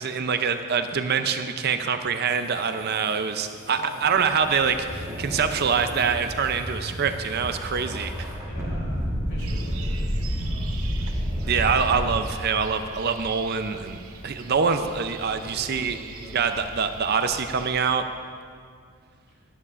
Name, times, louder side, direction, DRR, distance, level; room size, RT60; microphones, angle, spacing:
voice 1, 0.0-8.1 11.5-14.0 14.2-16.0 16.3-18.1, right 6 dB, 50° right, 8 dB, 0.5 m, -25 dB
sound 1, 2.3-8.3, left 1 dB, 90° left, 3.0 m, -49 dB
voice 2, 3.6-4.1 8.4-11.1 15.3-16.4 19.3-19.4, equal, 55° left, -4 dB, 3.1 m, -45 dB
sound 2, 4.0-12.2, equal, 15° right, 1.4 m, -30 dB
sound 3, 9.4-17.7, right 4 dB, 80° right, 0.8 m, -43 dB
16.5 x 11.0 x 2.5 m, 2.1 s
head